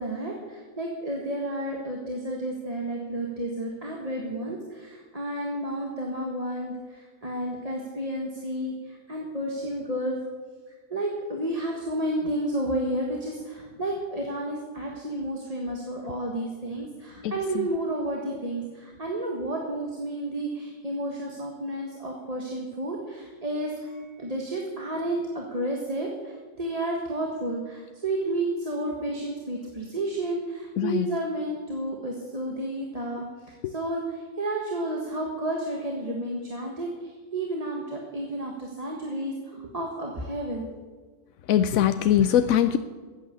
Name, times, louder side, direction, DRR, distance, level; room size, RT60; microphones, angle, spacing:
voice 1, 0.0-10.2 10.9-40.7, right 1 dB, 30° right, 0 dB, 1.7 m, -31 dB
voice 2, 17.2-17.7 30.8-31.1 33.6-33.7 41.5-42.8, left 10 dB, 90° left, 10 dB, 1.0 m, -22 dB
14.0 x 9.1 x 8.4 m, 1.4 s
omnidirectional pair, 1.4 m